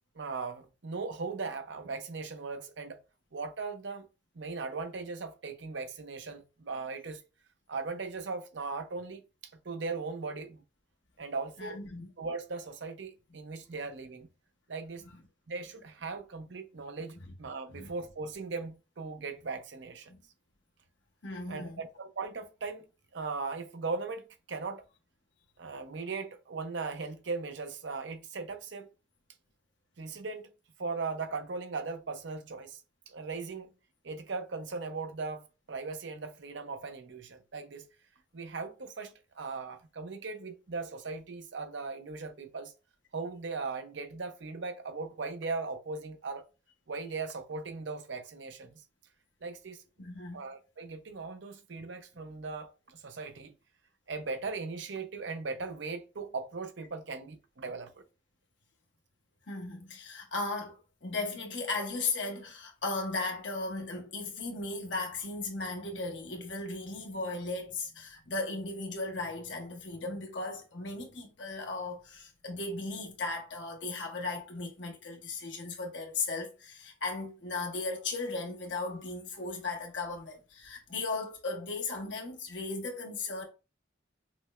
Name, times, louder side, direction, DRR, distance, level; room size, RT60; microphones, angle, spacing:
voice 1, 0.1-3.0 3.3-4.1 4.4-7.2 7.7-9.2 9.6-10.6 11.2-11.8 12.2-14.3 14.7-15.0 15.5-20.1 21.5-22.8 23.1-24.8 25.6-28.9 30.0-30.5 30.8-32.8 33.1-33.7 34.0-37.9 38.3-42.7 43.1-46.5 46.9-48.8 49.4-49.8 50.3-53.5 54.1-58.0, right 4 dB, 80° right, 0.7 m, -38 dB
voice 2, 11.6-12.1 17.1-17.3 17.7-17.9 20.1-20.2 21.2-21.8 50.0-50.4 59.5-83.4, left 3 dB, 85° left, 1.1 m, -36 dB
5.8 x 2.1 x 2.4 m
head